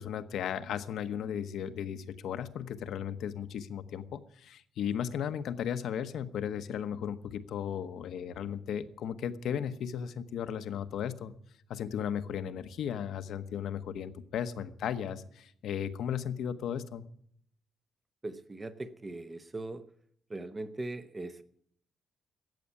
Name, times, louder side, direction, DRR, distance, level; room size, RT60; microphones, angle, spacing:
voice 1, 0.0-11.3 11.7-17.0, left 8 dB, 60° left, 11 dB, 1.0 m, -35 dB
voice 2, 18.2-19.8 20.3-21.4, right 2 dB, 15° right, 11 dB, 0.9 m, -40 dB
14.0 x 8.6 x 9.5 m, 0.65 s
cardioid pair, 170°, 0 cm